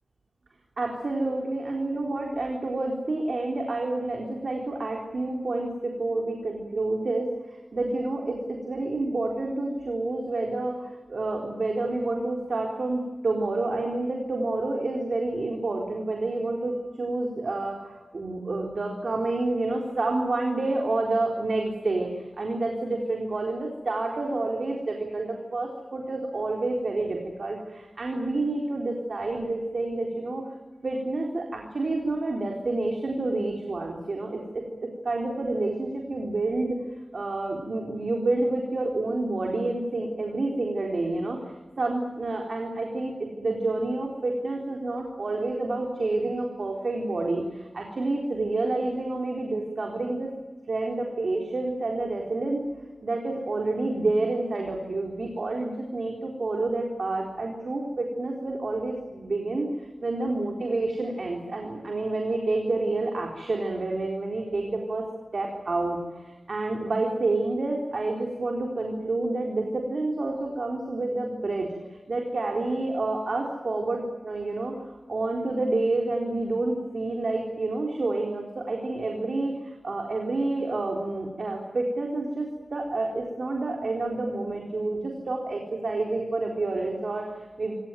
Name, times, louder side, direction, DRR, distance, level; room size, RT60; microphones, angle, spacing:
voice 1, 0.8-7.3 7.7-30.4 30.8-36.8 37.1-50.3 50.7-52.7 53.0-59.7 60.0-65.1 65.3-87.7, right 2 dB, 70° right, 0 dB, 4.1 m, -29 dB
26.5 x 17.5 x 9.4 m, 1.3 s
cardioid pair, 50°, 0 cm